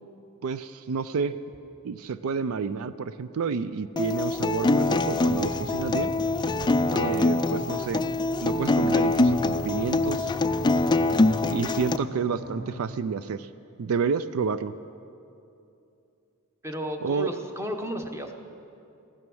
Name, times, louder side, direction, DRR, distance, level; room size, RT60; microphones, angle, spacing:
voice 1, 0.4-1.4 1.8-6.1 6.9-8.0 8.4-10.3 11.5-13.5 13.8-14.7 17.0-17.3, right 5 dB, 70° right, 14 dB, 0.4 m, -29 dB
Acoustic guitar, 4.0-12.0, left 2 dB, 20° left, 0.4 m, -24 dB
sound 1, 4.9-12.8, right 1 dB, 90° right, 3.6 m, -39 dB
voice 2, 16.6-18.3, equal, 10° right, 5 dB, 0.9 m, -33 dB
15.5 x 12.5 x 6.2 m, 2.7 s
head